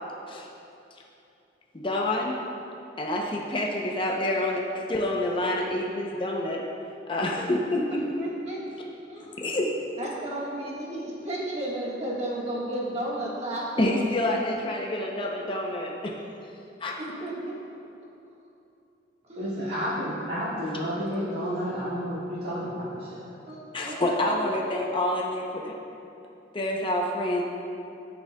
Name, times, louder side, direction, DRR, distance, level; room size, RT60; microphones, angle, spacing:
voice 1, 1.7-2.4 3.0-6.6 7.1-8.0 9.4-9.7 13.8-16.2 16.8-17.0 23.7-25.7 26.5-27.4, left 1 dB, 25° left, -1 dB, 0.6 m, -27 dB
voice 2, 7.9-9.4 10.0-14.0 17.0-17.6 19.3-19.5 23.5-24.4, right 1 dB, 35° right, -5 dB, 1.4 m, -34 dB
voice 3, 19.4-23.3, equal, 65° right, -12 dB, 1.7 m, -31 dB
13.5 x 6.1 x 2.2 m, 2.7 s
head